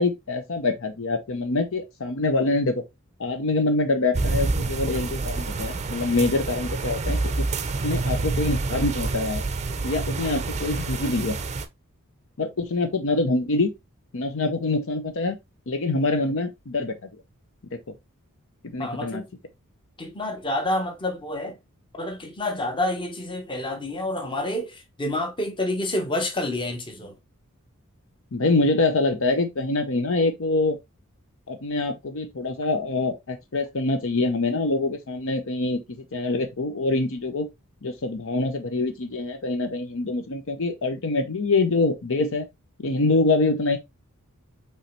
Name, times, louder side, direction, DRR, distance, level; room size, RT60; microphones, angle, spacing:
voice 1, 0.0-2.8 3.2-7.5 7.8-9.4 9.8-11.3 12.4-13.7 14.1-15.4 15.7-16.9 18.7-19.2 28.3-30.8 31.5-37.5 37.8-42.4 42.8-43.8, left 2 dB, 60° left, 0.7 m, -25 dB
sound 1, 4.1-11.7, right 3 dB, 30° right, 0.6 m, -27 dB
voice 2, 18.8-19.2 20.0-21.6 21.9-27.1, left 1 dB, 20° left, 1.0 m, -28 dB
5.4 x 3.1 x 3.1 m
head